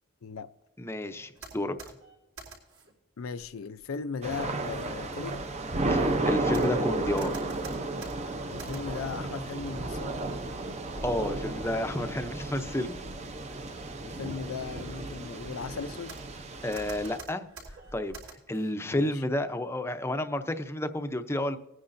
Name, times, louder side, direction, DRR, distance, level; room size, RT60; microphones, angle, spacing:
voice 1, 0.8-1.8 5.9-7.3 11.0-13.0 16.6-17.5 17.9-18.2 18.5-21.6, left 1 dB, 10° left, 0.6 m, -31 dB
sound 1, 1.3-2.9 3.4-4.0 4.6-9.3 9.7-10.2 11.2-11.3 11.8-12.9 13.3-13.6 14.1-14.2 14.7-16.4 16.7-18.8, right 3 dB, 75° right, 3.8 m, -49 dB
voice 2, 3.2-5.4 8.5-10.2 14.0-16.2 18.8-19.3, left 5 dB, 70° left, 0.5 m, -37 dB
Thunder / Rain, 4.2-17.2, right 2 dB, 30° right, 0.7 m, -33 dB
21.0 x 9.8 x 2.6 m
head